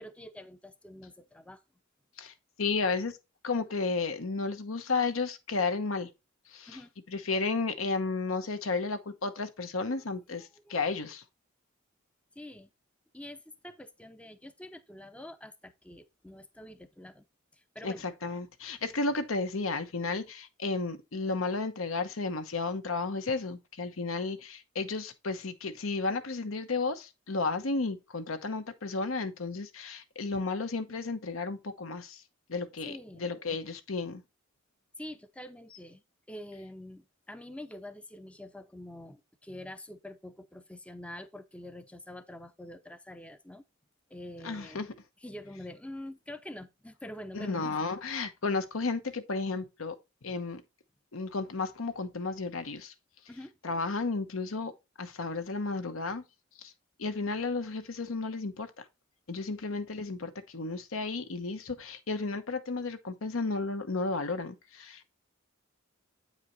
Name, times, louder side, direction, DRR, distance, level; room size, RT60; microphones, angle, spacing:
voice 1, 0.0-1.6 6.7-6.9 9.9-10.1 10.4-10.8 12.4-12.7 13.1-17.2 17.5-18.0 32.8-33.3 35.0-36.0 36.3-43.6 44.1-44.9 45.2-47.8 53.3-53.5, left 1 dB, 5° left, 0.5 m, -46 dB
voice 2, 2.2-3.2 3.4-6.1 6.5-6.8 7.1-11.2 17.8-32.2 32.5-34.2 44.4-44.9 47.3-50.0 50.2-50.6 51.1-52.9 53.6-54.7 55.0-56.2 56.6-56.7 57.0-58.8 59.3-65.1, left 3 dB, 75° left, 1.0 m, -33 dB
8.7 x 4.9 x 4.0 m
head